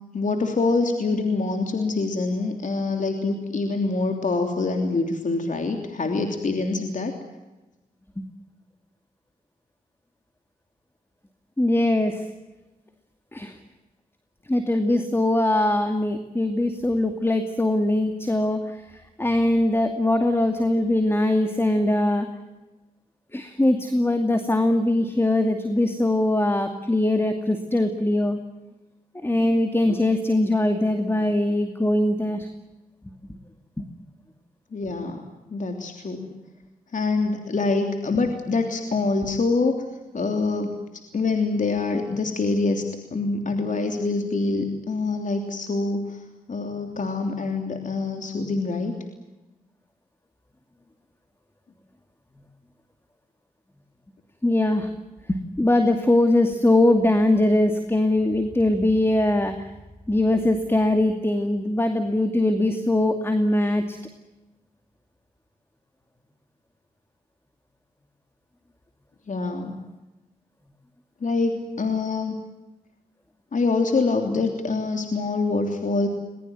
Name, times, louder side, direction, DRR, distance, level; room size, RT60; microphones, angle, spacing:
voice 1, 0.1-7.1 34.7-35.2 35.5-36.3 36.9-39.8 40.1-40.8 41.1-42.8 43.1-46.2 46.5-48.9 69.3-69.8 71.2-72.3 73.5-76.1, left 3 dB, 55° left, 5 dB, 3.2 m, -25 dB
voice 2, 11.6-12.3 13.3-13.6 14.5-22.3 23.3-28.4 29.1-32.5 33.8-33.9 54.4-54.9 55.3-59.7 60.1-64.0, left 1 dB, 15° left, 7 dB, 2.4 m, -21 dB
22.0 x 21.0 x 9.4 m, 1.1 s
cardioid pair, 65°, 16 cm